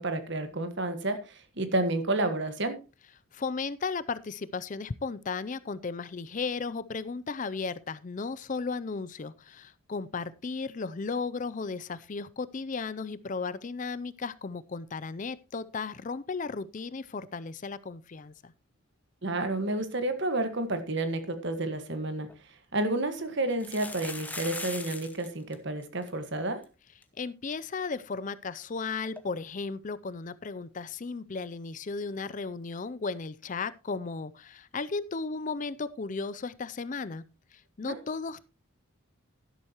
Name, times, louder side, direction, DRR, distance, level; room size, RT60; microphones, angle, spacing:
voice 1, 0.0-2.8 19.2-22.3 22.7-26.6 37.8-38.0, right 2 dB, 55° right, 1.5 m, -30 dB
voice 2, 3.3-18.5 27.2-37.2 37.5-38.4, left 4 dB, 35° left, 0.4 m, -35 dB
sound 1, 22.3-22.4 23.5-25.3 25.5-25.6 25.8-26.1 26.6-26.7 27.0-27.1 29.2-29.3, left 3 dB, 5° left, 1.0 m, -39 dB
12.0 x 11.0 x 3.0 m
head